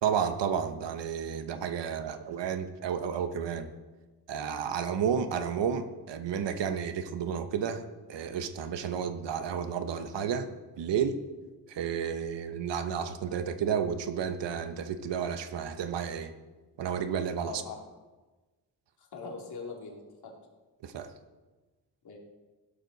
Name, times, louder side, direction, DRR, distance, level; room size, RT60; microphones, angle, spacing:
voice 1, 0.0-3.7 4.3-7.8 8.1-10.5 10.8-11.2 11.7-16.3 16.8-17.6 20.8-21.1, right 7 dB, 90° right, 9 dB, 1.2 m, -31 dB
voice 2, 17.5-17.8 19.0-20.3 22.0-22.2, left 4 dB, 65° left, -1 dB, 3.0 m, -42 dB
16.5 x 12.5 x 4.1 m, 1.2 s
wide cardioid pair, 120°, 41 cm